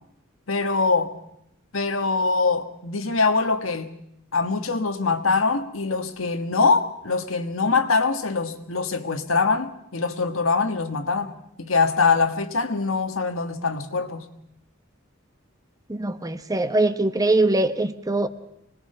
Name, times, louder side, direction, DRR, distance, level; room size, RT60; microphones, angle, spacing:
voice 1, 0.5-1.1 1.7-3.9 4.3-11.3 11.6-14.2, left 4 dB, 80° left, 1.5 m, -23 dB
voice 2, 16.0-18.3, right 2 dB, 20° right, 1.0 m, -22 dB
25.0 x 20.0 x 5.6 m
head